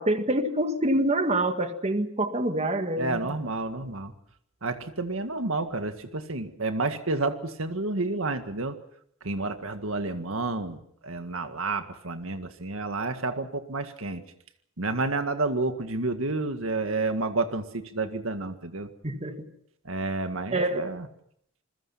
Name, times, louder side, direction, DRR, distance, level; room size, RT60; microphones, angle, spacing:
voice 1, 0.0-3.4 19.0-19.5 20.5-20.9, right 1 dB, 30° right, 7 dB, 1.8 m, -26 dB
voice 2, 3.0-4.1 4.6-8.7 9.2-14.2 14.8-18.9 19.9-21.0, right 3 dB, 75° right, 8 dB, 1.9 m, -30 dB
28.0 x 21.5 x 5.8 m, 0.70 s
head